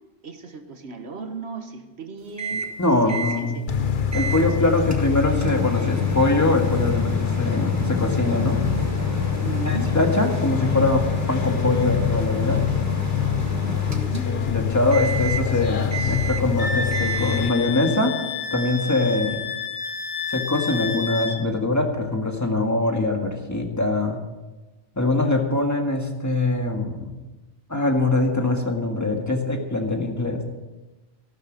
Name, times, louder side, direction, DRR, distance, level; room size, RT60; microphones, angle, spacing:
voice 1, 0.2-2.7 3.0-3.7 4.3-4.7 9.4-9.9 13.7-14.3, right 3 dB, 70° right, 7 dB, 1.6 m, -36 dB
Microwave oven, 2.4-2.8 3.1-3.4 4.1-4.5 4.9-14.5 14.9-15.5 15.9-16.6 16.9-17.5, right 2 dB, 15° right, 1.4 m, -31 dB
voice 2, 2.8-3.6 4.1-8.6 9.6-12.6 14.3-18.1 18.5-19.4 20.3-24.2 24.9-27.1 27.7-30.4, left 2 dB, 15° left, 3 dB, 1.7 m, -23 dB
sound 1, 3.7-17.5, left 8 dB, 50° left, 1.0 m, -25 dB
Wind instrument woodwind instrument, 16.6-21.4, left 5 dB, 85° left, 3.0 m, -30 dB
14.5 x 12.5 x 5.2 m, 1.1 s
omnidirectional pair, 1.2 m